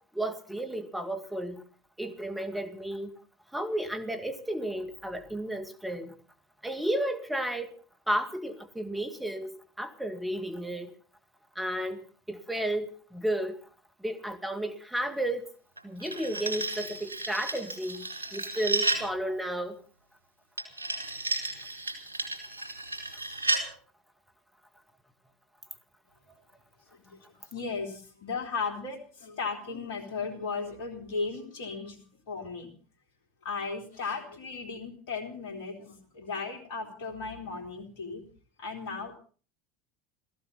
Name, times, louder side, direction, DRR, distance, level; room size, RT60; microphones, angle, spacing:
voice 1, 0.2-1.6 2.0-3.1 3.5-6.1 6.6-7.7 8.1-10.9 11.6-12.0 12.3-13.6 14.0-15.5 15.8-18.0 18.3-19.8, right 1 dB, 5° right, 6 dB, 2.1 m, -32 dB
sound 1, 15.8-19.1 20.6-23.7, right 2 dB, 90° right, 3.2 m, -33 dB
voice 2, 26.9-32.7 33.4-38.2 38.6-39.2, left 4 dB, 65° left, 7 dB, 3.6 m, -36 dB
17.5 x 15.0 x 5.7 m, 0.41 s
hypercardioid pair, 75°, 0 cm